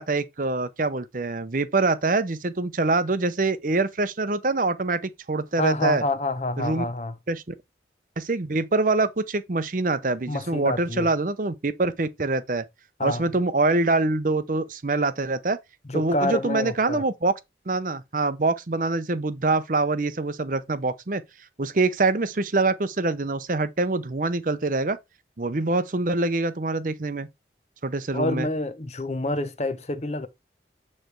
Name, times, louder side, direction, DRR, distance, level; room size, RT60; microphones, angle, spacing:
voice 1, 0.0-5.0 5.3-6.0 6.6-6.8 7.3-7.5 8.2-12.6 13.0-15.6 15.9-17.3 17.7-21.2 21.6-25.0 25.4-27.3 27.8-28.5, right 3 dB, 45° right, 0.7 m, -25 dB
voice 2, 5.6-7.2 10.3-11.1 13.0-13.3 15.9-17.0 28.1-30.3, left 2 dB, 35° left, 0.8 m, -27 dB
9.0 x 3.3 x 4.6 m
head